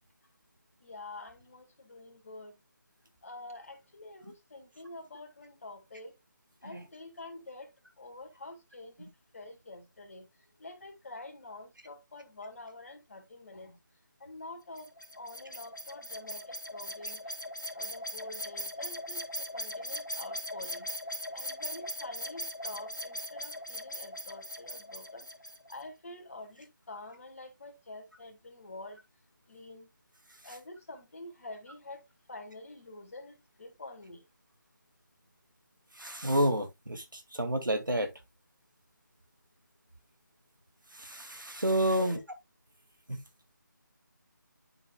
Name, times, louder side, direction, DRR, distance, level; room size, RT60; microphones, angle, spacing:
voice 1, 0.8-2.6 3.2-6.2 6.6-7.7 8.0-9.1 9.3-10.3 10.6-13.8 14.2-14.9 15.2-17.3 17.7-20.9 21.3-25.3 25.7-29.0 29.5-29.9 30.4-32.0 32.3-34.2 41.9-42.2, left 2 dB, 45° left, 2.2 m, -47 dB
sound 1, 14.8-25.8, equal, 70° left, 2.1 m, -40 dB
voice 2, 36.0-38.1 40.9-42.2 43.1-43.2, right 1 dB, 80° right, 2.1 m, -29 dB
11.0 x 5.1 x 2.2 m
figure-of-eight pair, 160°, 11 cm